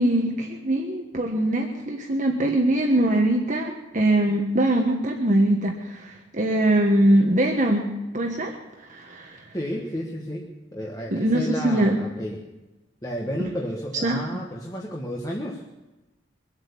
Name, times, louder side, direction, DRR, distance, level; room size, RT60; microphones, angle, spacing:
voice 1, 0.0-8.6 8.9-9.4 11.1-12.0 14.0-14.2, right 1 dB, 40° right, 1 dB, 1.4 m, -22 dB
voice 2, 9.5-12.5 13.0-15.6, equal, 20° left, -1 dB, 1.4 m, -32 dB
23.5 x 8.1 x 7.0 m, 1.1 s
head